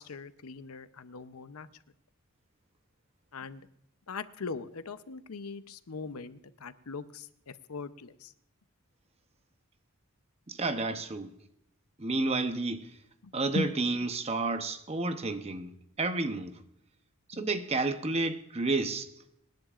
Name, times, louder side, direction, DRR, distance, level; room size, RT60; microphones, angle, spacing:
voice 1, 0.0-1.7 3.3-3.7 4.1-8.3 13.5-13.7 17.3-17.5, left 4 dB, 80° left, 0.7 m, -40 dB
voice 2, 10.5-11.3 12.0-13.0 13.3-16.6 17.3-19.1, right 3 dB, 30° right, 0.8 m, -31 dB
26.5 x 10.5 x 2.5 m
head